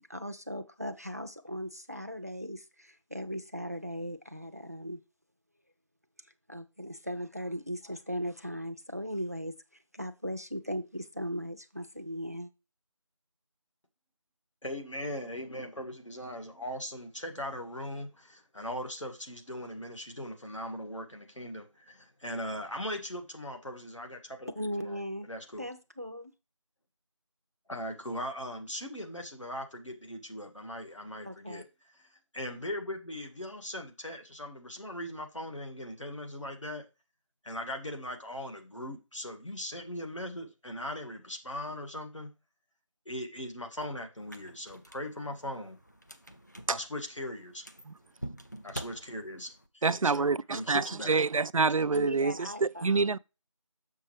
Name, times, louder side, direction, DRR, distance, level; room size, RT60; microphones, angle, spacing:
voice 1, 0.1-5.0 6.5-9.5 9.9-12.5 24.6-25.3 25.6-26.3 31.2-31.6 51.9-53.2, equal, 30° right, 0.5 m, -38 dB
voice 2, 14.6-24.5 24.8-25.0 25.3-25.7 27.7-31.6 32.3-36.8 37.4-42.3 43.0-45.8 46.7-47.6 48.6-51.2, left 1 dB, 65° left, 1.8 m, -39 dB
sound 1, 44.2-49.7, right 1 dB, 35° left, 0.5 m, -47 dB
voice 3, 49.8-52.3 52.6-53.2, right 4 dB, 90° right, 0.4 m, -26 dB
6.7 x 6.5 x 3.2 m
figure-of-eight pair, 175°, 17 cm